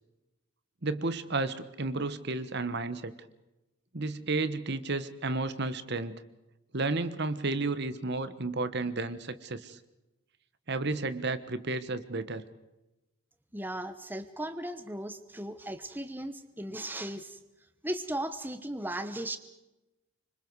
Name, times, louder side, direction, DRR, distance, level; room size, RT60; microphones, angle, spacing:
voice 1, 0.8-3.1 3.9-6.2 6.7-9.8 10.7-12.4, right 3 dB, 50° right, 13 dB, 1.2 m, -32 dB
voice 2, 13.5-17.4 17.8-19.4, right 1 dB, 10° right, 10 dB, 1.0 m, -36 dB
27.0 x 25.0 x 4.8 m, 0.98 s
head